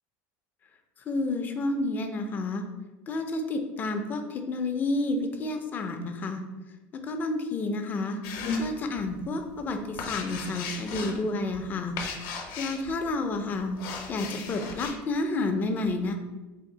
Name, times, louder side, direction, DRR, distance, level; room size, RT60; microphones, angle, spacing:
voice 1, 1.0-2.6 3.1-6.4 7.0-8.2 8.6-12.0 12.6-13.8 14.1-16.2, left 2 dB, 30° left, 5 dB, 0.4 m, -30 dB
sound 1, 8.2-9.2 9.5-13.1 13.6-15.0, left 4 dB, 65° left, 0.7 m, -35 dB
3.5 x 2.3 x 3.9 m, 1.1 s
cardioid pair, 145°, 7 cm